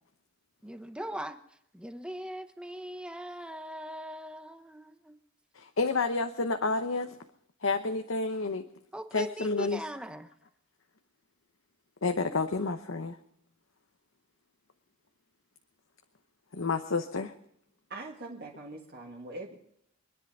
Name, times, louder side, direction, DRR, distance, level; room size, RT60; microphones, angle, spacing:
voice 1, 0.6-5.2 8.9-10.3, right 1 dB, 5° right, 9 dB, 0.9 m, -40 dB
voice 2, 5.6-7.1 7.6-8.6 9.1-9.8 12.0-13.2 16.5-17.3, left 3 dB, 70° left, 7 dB, 0.9 m, -30 dB
voice 3, 17.9-19.6, right 2 dB, 50° right, 0 dB, 1.9 m, -42 dB
25.0 x 10.5 x 5.4 m, 0.75 s
head